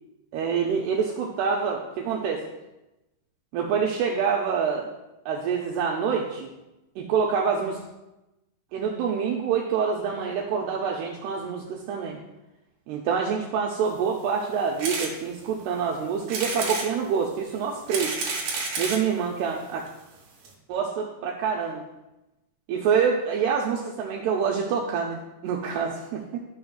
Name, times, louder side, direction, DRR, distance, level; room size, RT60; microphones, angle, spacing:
voice 1, 0.3-2.4 3.5-4.9 5.3-6.5 7.0-7.8 8.7-12.2 12.9-18.2 18.8-19.8 20.7-21.8 22.7-26.4, right 6 dB, 90° right, 0 dB, 2.3 m, -26 dB
sound 1, 14.8-15.1 15.6-15.7 16.3-16.9 17.6-19.1 19.9-20.0 20.1-20.2 20.4-20.5, right 4 dB, 60° right, 3.4 m, -30 dB
13.0 x 5.9 x 2.3 m, 0.97 s
omnidirectional pair, 5.4 m